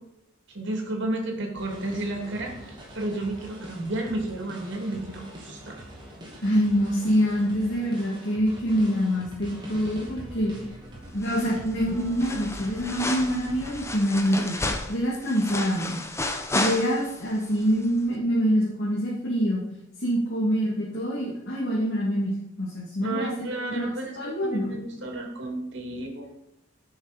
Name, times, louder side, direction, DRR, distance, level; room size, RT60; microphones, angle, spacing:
voice 1, 0.5-5.8 23.0-26.3, right 1 dB, 60° right, 1 dB, 2.6 m, -32 dB
sound 1, 1.5-13.8, equal, 25° right, 2.6 m, -43 dB
voice 2, 6.4-10.5 11.1-14.6 14.9-16.0 16.5-19.6 20.0-23.3 23.7-23.9 24.1-24.8, equal, 55° left, -6 dB, 2.4 m, -25 dB
sound 2, 11.2-11.7 12.0-17.3 17.6-17.7, left 2 dB, 15° left, 0.9 m, -32 dB
12.0 x 6.4 x 5.1 m, 0.87 s
head